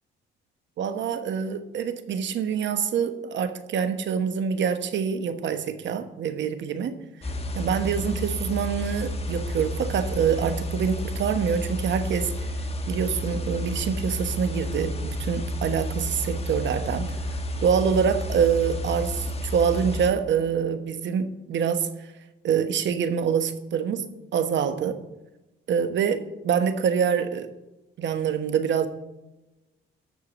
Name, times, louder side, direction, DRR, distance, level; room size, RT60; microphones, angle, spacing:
voice 1, 0.8-6.9 7.5-12.3 12.9-17.1 17.6-21.9 22.4-24.0 24.3-25.0 25.7-27.5 28.0-28.9, right 7 dB, 65° right, 9 dB, 1.2 m, -25 dB
sound 1, 7.2-20.1, equal, 30° left, 1.3 m, -31 dB
13.5 x 4.8 x 7.2 m, 0.98 s
cardioid pair, 90°, 20 cm